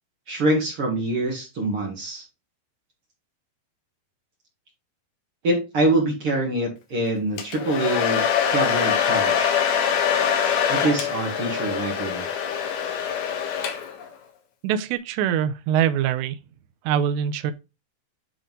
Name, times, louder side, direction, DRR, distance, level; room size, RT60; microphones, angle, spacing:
voice 1, 0.3-2.2 5.4-8.2 8.5-9.7 10.7-12.2, right 1 dB, 50° right, 1.8 m, -25 dB
Domestic sounds home sounds, 7.4-14.1, left 8 dB, 70° left, 2.8 m, -24 dB
voice 2, 14.6-16.4 16.9-17.5, right 9 dB, 85° right, 2.8 m, -23 dB
10.0 x 3.8 x 3.7 m
omnidirectional pair, 5.2 m